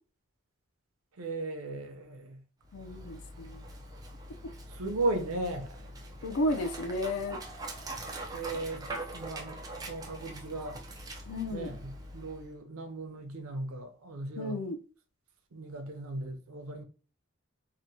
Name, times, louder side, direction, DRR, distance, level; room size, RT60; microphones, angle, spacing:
voice 1, 1.2-2.4 4.7-5.8 8.3-8.8 9.1-10.8 11.5-14.6 15.5-16.8, right 2 dB, 85° right, 0.6 m, -36 dB
Dog, 2.6-12.6, right 1 dB, 15° right, 0.3 m, -43 dB
voice 2, 2.7-3.6 6.2-7.4 11.3-11.7 14.4-14.8, left 1 dB, 75° left, 0.4 m, -33 dB
2.9 x 2.1 x 2.6 m
head